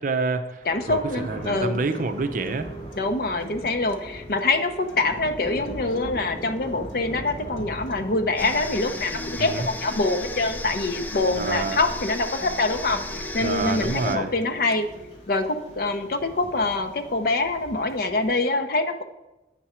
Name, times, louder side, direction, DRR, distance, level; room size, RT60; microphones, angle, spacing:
voice 1, 0.0-1.0 1.3-2.7 9.4-9.7 11.4-11.8 13.4-14.3, right 3 dB, 50° right, 9 dB, 0.5 m, -27 dB
voice 2, 0.6-1.8 3.0-14.9 15.3-19.0, left 2 dB, 55° left, 7 dB, 0.7 m, -25 dB
Thunder / Rain, 0.6-18.3, equal, 35° left, 3.1 m, -43 dB
sound 1, 1.1-17.1, right 1 dB, 85° left, 1.2 m, -41 dB
sound 2, 8.4-14.2, left 2 dB, 10° left, 0.4 m, -35 dB
8.2 x 5.9 x 4.3 m, 0.99 s
head